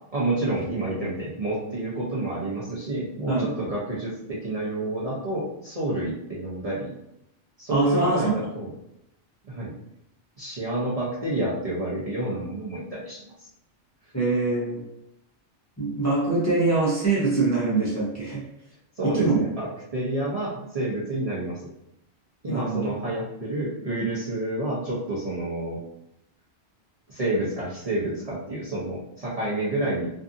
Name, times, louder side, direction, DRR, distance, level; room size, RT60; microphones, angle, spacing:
voice 1, 0.1-6.9 7.6-8.7 9.5-9.7 10.4-13.5 18.9-19.7 19.9-21.6 22.4-25.8 27.1-30.1, right 1 dB, 40° right, -7 dB, 0.6 m, -29 dB
voice 2, 7.7-8.4 14.1-14.8 15.8-18.4 19.0-19.4 22.5-22.9, right 3 dB, 20° left, -6 dB, 0.5 m, -24 dB
2.5 x 2.5 x 2.5 m, 0.79 s
omnidirectional pair, 1.2 m